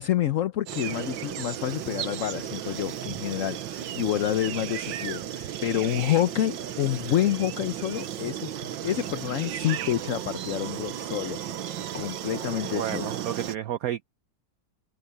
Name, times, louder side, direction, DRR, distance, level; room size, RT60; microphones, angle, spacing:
voice 1, 0.0-13.1, left 11 dB, 55° left, 0.9 m, -28 dB
sound 1, 0.7-13.6, right 10 dB, 85° right, 1.7 m, -34 dB
voice 2, 12.7-14.1, right 11 dB, 65° right, 0.9 m, -31 dB
omnidirectional pair, 2.0 m